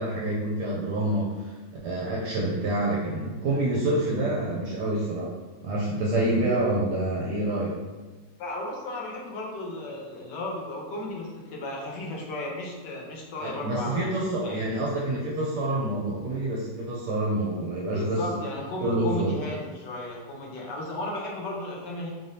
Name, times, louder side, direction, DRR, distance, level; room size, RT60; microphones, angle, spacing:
voice 1, 0.0-1.5 1.8-5.3 5.6-7.8 13.4-18.4 18.8-19.3, right 1 dB, 75° right, -5 dB, 1.1 m, -27 dB
voice 2, 8.4-14.6 17.9-22.1, left 1 dB, 80° left, -2 dB, 1.4 m, -34 dB
3.8 x 3.3 x 2.7 m, 1.3 s
omnidirectional pair, 1.9 m